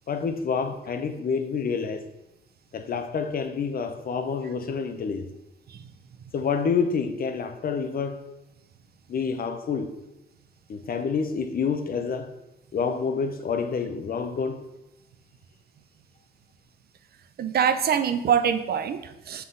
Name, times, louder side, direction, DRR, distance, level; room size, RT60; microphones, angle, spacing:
voice 1, 0.1-2.0 2.7-5.3 6.3-8.2 9.1-9.9 10.7-12.3 12.7-14.6, left 5 dB, 45° left, 0.7 m, -28 dB
voice 2, 17.4-19.4, right 8 dB, 50° right, 0.5 m, -24 dB
5.8 x 5.8 x 3.8 m
cardioid pair, 90°, 20 cm